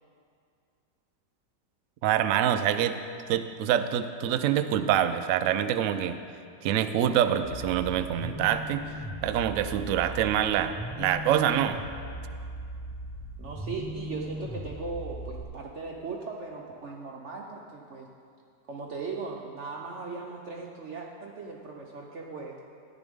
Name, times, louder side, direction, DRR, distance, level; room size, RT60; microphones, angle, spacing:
voice 1, 2.0-3.0 3.3-6.2 6.6-8.8 9.2-11.8, right 10 dB, 85° right, 9 dB, 0.6 m, -25 dB
sound 1, 7.4-15.4, equal, ahead, 0.3 m, -38 dB
voice 2, 13.4-18.1 18.6-22.5, right 4 dB, 55° right, -1 dB, 0.8 m, -38 dB
14.0 x 10.0 x 3.6 m, 2.4 s
omnidirectional pair, 1.9 m